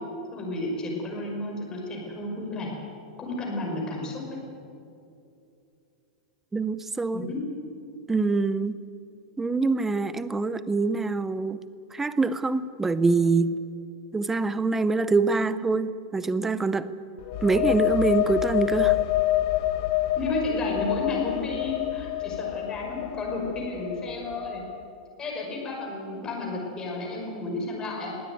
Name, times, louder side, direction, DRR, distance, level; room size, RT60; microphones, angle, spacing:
voice 1, 0.3-2.7 3.2-4.4 7.1-7.4 20.2-24.6 25.2-28.1, left 2 dB, 15° left, -1 dB, 5.8 m, -32 dB
voice 2, 6.5-7.3 8.1-8.8 9.4-11.6 11.9-13.6 14.1-16.9 17.4-19.0, right 3 dB, 10° right, 15 dB, 0.6 m, -25 dB
sound 1, 17.2-24.8, left 15 dB, 45° left, 1.3 m, -27 dB
21.0 x 17.0 x 9.5 m, 2.6 s
supercardioid pair, 160°, 4 cm